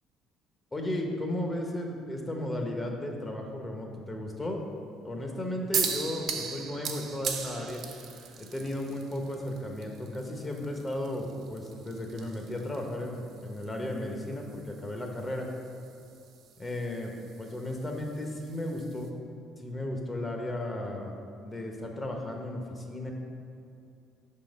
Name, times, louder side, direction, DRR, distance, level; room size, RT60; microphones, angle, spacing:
voice 1, 0.7-4.6 5.0-7.8 8.4-15.5 16.6-17.1 17.4-19.1 19.6-21.1 21.4-23.1, left 1 dB, 25° left, 2 dB, 0.9 m, -34 dB
sound 1, 5.7-19.1, right 6 dB, 60° right, 0.6 m, -39 dB
5.6 x 3.8 x 5.1 m, 2.5 s
cardioid pair, 95°, 0 cm